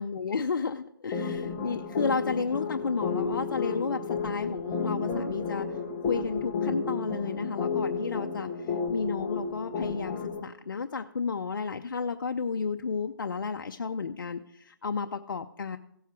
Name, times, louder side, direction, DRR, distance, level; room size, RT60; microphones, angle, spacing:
voice 1, 0.0-5.7 6.1-8.5 8.9-15.8, left 5 dB, 65° left, 6 dB, 0.6 m, -32 dB
sound 1, 1.1-10.4, left 5 dB, 15° left, 1.0 m, -32 dB
16.0 x 8.0 x 4.6 m, 0.74 s
hypercardioid pair, 160°, 12 cm